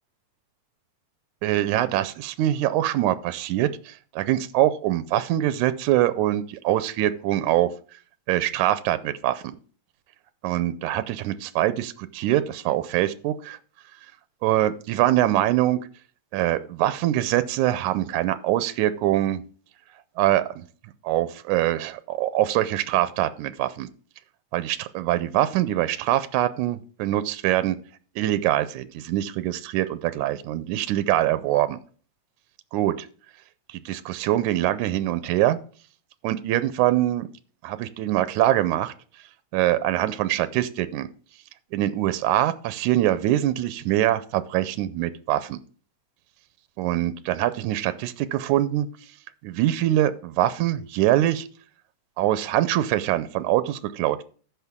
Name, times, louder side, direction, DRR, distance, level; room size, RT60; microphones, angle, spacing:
voice 1, 1.4-7.7 8.3-9.4 10.4-13.6 14.4-15.8 16.3-19.4 20.2-20.7 21.0-23.9 24.5-27.8 28.2-31.8 32.7-33.0 33.7-35.6 36.2-37.3 37.6-38.9 39.5-41.1 41.7-45.6 46.8-48.9 49.4-51.5 52.2-54.2, right 13 dB, 90° right, 14 dB, 2.1 m, -23 dB
14.0 x 5.9 x 3.6 m, 0.41 s
omnidirectional pair, 3.4 m